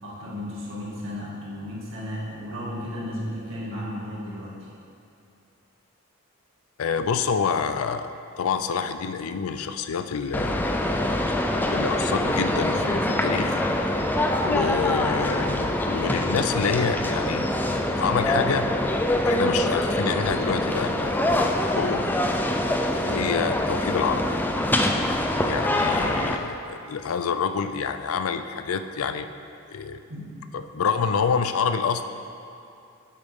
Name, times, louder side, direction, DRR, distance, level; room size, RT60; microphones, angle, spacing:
voice 1, 0.0-4.5 25.7-25.9 30.1-30.2, left 1 dB, 65° right, -6 dB, 2.2 m, -34 dB
voice 2, 6.8-8.1 8.4-10.7 11.7-13.6 14.4-17.5 18.0-18.7 19.2-21.4 21.7-22.1 23.0-24.3 25.4-29.3 29.7-30.0 30.5-32.1, left 6 dB, 85° left, 9 dB, 0.4 m, -27 dB
sound 1, 10.3-26.4, left 1 dB, 10° left, 0.4 m, -24 dB
9.0 x 8.2 x 3.6 m, 2.6 s
head